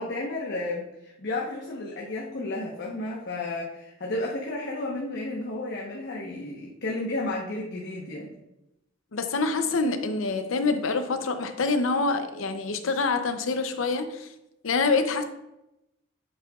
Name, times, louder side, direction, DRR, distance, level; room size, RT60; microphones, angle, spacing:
voice 1, 0.0-8.3, left 2 dB, 60° left, -2 dB, 1.0 m, -32 dB
voice 2, 9.1-14.3 14.6-15.2, left 4 dB, 90° left, 8 dB, 0.6 m, -26 dB
8.8 x 7.6 x 2.4 m, 0.89 s
head